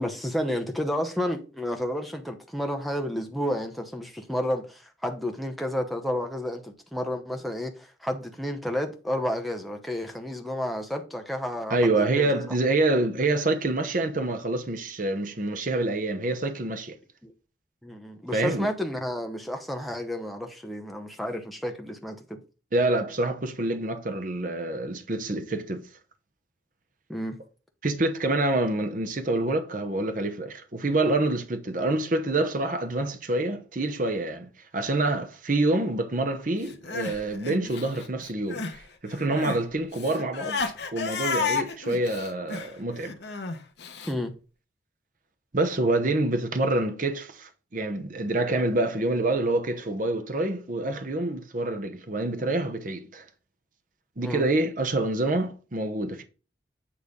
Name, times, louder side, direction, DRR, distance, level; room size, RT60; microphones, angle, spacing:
voice 1, 0.0-12.4 17.2-17.3 17.8-22.4 27.1-27.4 44.1-44.3 54.2-54.5, left 1 dB, ahead, 0.9 m, -31 dB
voice 2, 11.7-17.0 18.3-18.7 22.7-25.9 27.8-40.6 40.9-43.2 45.5-53.3 54.2-56.2, right 2 dB, 45° right, 0.8 m, -27 dB
Crying sobbing, 36.6-38.8 39.1-44.1, left 4 dB, 65° left, 1.0 m, -32 dB
8.6 x 3.3 x 5.3 m
head